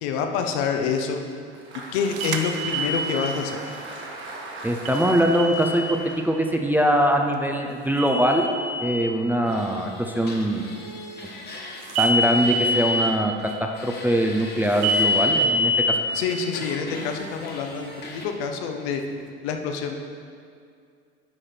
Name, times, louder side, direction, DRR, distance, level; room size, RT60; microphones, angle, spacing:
voice 1, 0.0-1.2 1.9-3.6 16.1-19.0 19.4-19.9, left 6 dB, 70° left, 4 dB, 1.0 m, -27 dB
Applause, 1.3-7.6, right 2 dB, 35° right, 1.7 m, -39 dB
sound 1, 2.2-3.3 4.9-6.0 8.0-9.0 11.9-13.0 14.8-15.9, equal, 60° right, 0.9 m, -24 dB
voice 2, 4.6-8.5 8.8-10.7 12.0-16.0, equal, 5° right, 2 dB, 0.6 m, -22 dB
sound 2, 9.4-13.1 13.4-15.5 16.1-18.3, left 2 dB, 30° left, 1.5 m, -39 dB
9.9 x 4.9 x 4.4 m, 2.3 s
hypercardioid pair, 95°, 34 cm